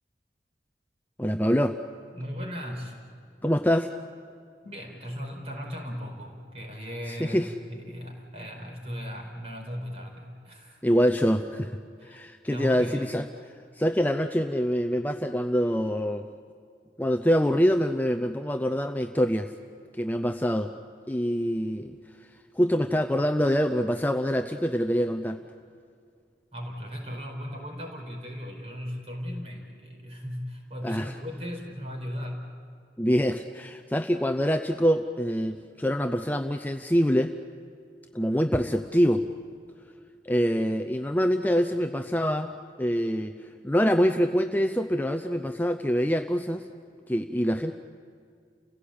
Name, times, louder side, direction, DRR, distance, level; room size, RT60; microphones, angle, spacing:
voice 1, 1.2-1.8 3.4-3.9 7.2-7.5 10.8-13.3 13.8-16.3 17.0-19.5 20.0-20.7 21.1-22.0 22.5-25.4 30.8-31.1 33.0-37.3 38.1-39.2 40.2-42.5 42.8-43.3 43.6-46.6 47.1-47.7, equal, 10° left, 6 dB, 0.6 m, -25 dB
voice 2, 2.1-2.9 4.6-10.8 12.0-12.2 12.5-13.1 26.5-32.5, equal, 35° right, 1 dB, 4.8 m, -37 dB
30.0 x 16.5 x 8.7 m, 2.3 s
head